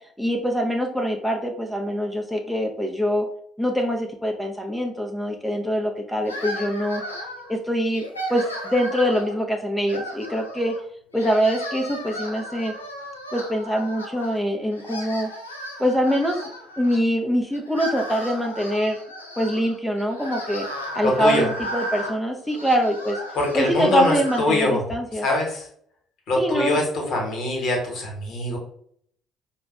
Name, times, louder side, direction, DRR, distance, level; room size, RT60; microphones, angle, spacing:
voice 1, 0.2-3.3 3.6-7.0 7.5-8.0 8.3-10.7 11.1-12.7 13.3-15.3 15.8-16.4 16.8-19.0 19.4-20.7 20.9-23.2 23.5-25.3 26.4-26.8, equal, 5° left, 2 dB, 0.5 m, -24 dB
sound 1, 6.2-7.5 7.9-9.4 9.8-10.8 11.1-14.4 14.7-17.0 17.5-24.5, equal, 85° left, 0.3 m, -35 dB
voice 2, 21.0-21.5 23.3-24.8 25.2-25.7 26.3-28.6, left 2 dB, 55° left, 0 dB, 1.0 m, -23 dB
4.8 x 2.0 x 2.3 m, 0.63 s
figure-of-eight pair, 50°, 0 cm